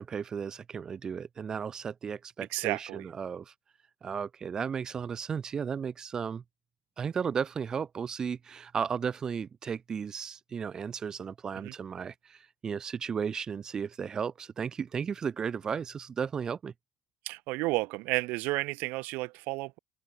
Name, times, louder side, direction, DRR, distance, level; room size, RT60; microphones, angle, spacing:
voice 1, 0.0-3.5 4.0-6.4 7.0-16.7, right 6 dB, 20° right, 2.3 m, -34 dB
voice 2, 2.5-3.0 11.6-11.7 17.3-19.8, right 23 dB, 65° right, 2.2 m, -32 dB
open air
cardioid pair, 175°, 3 cm